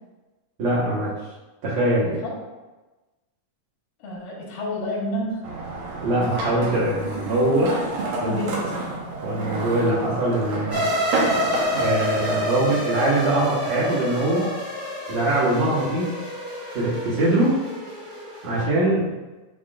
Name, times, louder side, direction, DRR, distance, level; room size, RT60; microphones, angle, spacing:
voice 1, 0.6-1.1 1.6-2.2 6.0-7.8 8.2-8.4 9.2-10.9 11.7-14.5 15.1-16.1 16.7-17.6 18.4-19.2, right 1 dB, 60° right, -7 dB, 2.4 m, -22 dB
voice 2, 2.0-2.4 4.0-5.5 8.2-8.9, left 1 dB, 90° left, -3 dB, 3.4 m, -30 dB
sound 1, 5.4-12.4, right 2 dB, 90° right, 2.9 m, -29 dB
sound 2, 10.7-18.6, left 1 dB, 25° right, 1.0 m, -28 dB
10.0 x 3.7 x 2.5 m, 1.2 s
omnidirectional pair, 4.0 m